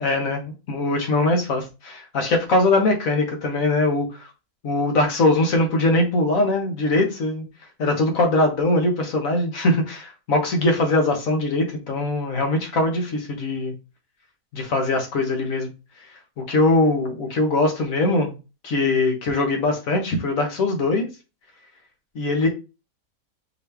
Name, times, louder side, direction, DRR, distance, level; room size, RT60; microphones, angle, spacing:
voice 1, 0.0-4.3 4.6-7.4 7.8-13.7 14.5-15.7 16.4-18.4 18.6-21.1 22.1-22.5, left 2 dB, 60° left, 3 dB, 1.5 m, -21 dB
4.5 x 3.1 x 3.4 m, 0.29 s
omnidirectional pair, 1.6 m